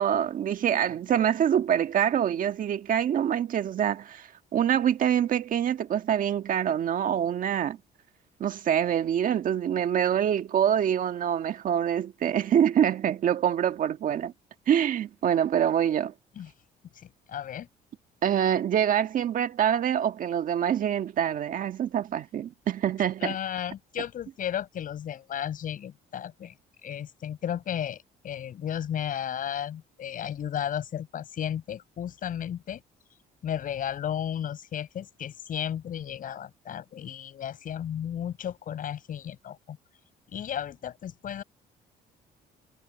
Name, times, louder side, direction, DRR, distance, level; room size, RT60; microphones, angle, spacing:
voice 1, 0.0-7.8 8.4-14.3 14.7-16.1 18.2-23.4, right 9 dB, 55° right, 1.6 m, -25 dB
voice 2, 17.0-17.7 23.2-26.5 26.8-32.8 33.4-39.8 40.3-41.4, left 9 dB, 55° left, 7.1 m, -34 dB
cardioid pair, 110°, 17 cm